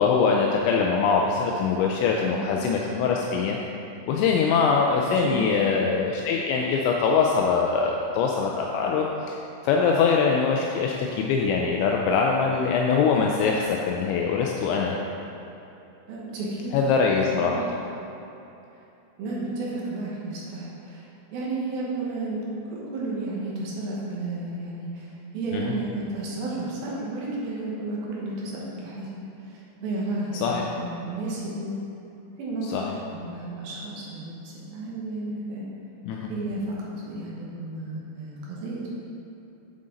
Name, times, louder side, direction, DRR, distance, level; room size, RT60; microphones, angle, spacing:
voice 1, 0.0-3.6 4.1-9.4 9.6-15.0 16.7-17.6 25.5-25.6 30.3-30.6 32.7-33.0 36.1-36.3, left 5 dB, 85° left, 0 dB, 2.8 m, -23 dB
voice 2, 2.2-2.6 5.2-5.5 16.1-16.9 17.3-17.5 19.2-31.8 32.4-35.7 36.3-39.0, right 2 dB, 65° right, -5 dB, 2.6 m, -32 dB
8.8 x 7.5 x 3.8 m, 2.9 s
omnidirectional pair, 5.5 m